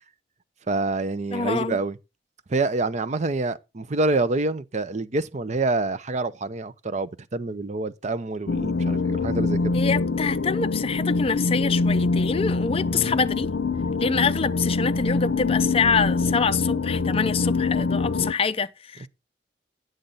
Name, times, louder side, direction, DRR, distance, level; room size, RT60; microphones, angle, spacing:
voice 1, 0.7-2.0 2.5-9.8 12.9-13.1, right 3 dB, 40° right, 0.6 m, -27 dB
voice 2, 1.3-1.8 9.7-13.5 14.0-19.1, left 5 dB, 30° left, 0.4 m, -25 dB
sound 1, 8.5-18.3, left 3 dB, 75° left, 0.6 m, -24 dB
10.0 x 7.9 x 3.9 m
head